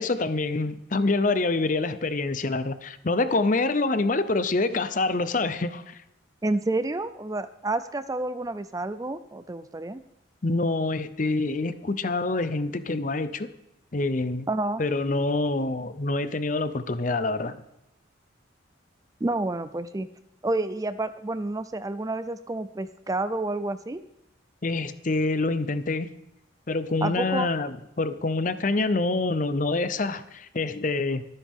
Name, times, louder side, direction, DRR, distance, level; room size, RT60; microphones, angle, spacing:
voice 1, 0.0-6.0 10.4-13.5 13.9-14.5 14.8-17.6 24.6-26.1 26.7-31.3, left 3 dB, 40° left, 12 dB, 0.7 m, -26 dB
voice 2, 6.4-10.0 14.5-14.8 19.2-20.1 20.4-24.0 27.0-27.5, right 2 dB, 15° right, 12 dB, 0.4 m, -29 dB
22.0 x 9.8 x 3.6 m, 0.86 s
head